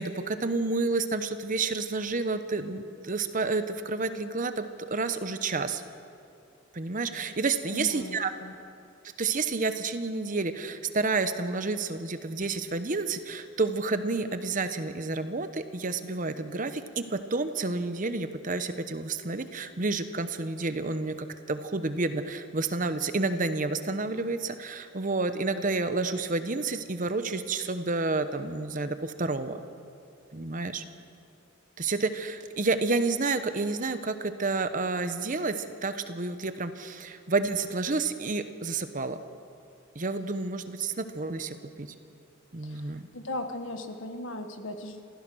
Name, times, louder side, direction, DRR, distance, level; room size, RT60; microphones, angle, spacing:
voice 1, 0.0-5.8 6.7-8.3 9.2-29.6 30.3-30.8 31.8-39.2 39.9-41.9 42.5-43.1, right 3 dB, 40° right, 10 dB, 1.0 m, -30 dB
voice 2, 7.7-8.5 42.6-45.1, left 1 dB, 65° left, 7 dB, 1.5 m, -38 dB
28.0 x 15.5 x 6.3 m, 2.6 s
head